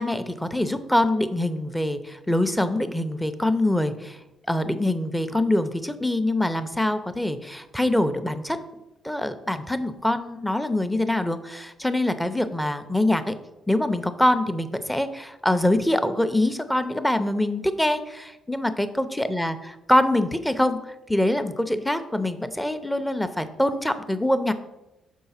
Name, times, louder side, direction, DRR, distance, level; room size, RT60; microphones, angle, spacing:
voice 1, 0.0-4.2 4.5-8.6 9.0-13.3 13.7-24.5, left 1 dB, 5° left, 10 dB, 0.6 m, -24 dB
6.5 x 4.6 x 5.6 m, 0.98 s
cardioid pair, 90°, 0 cm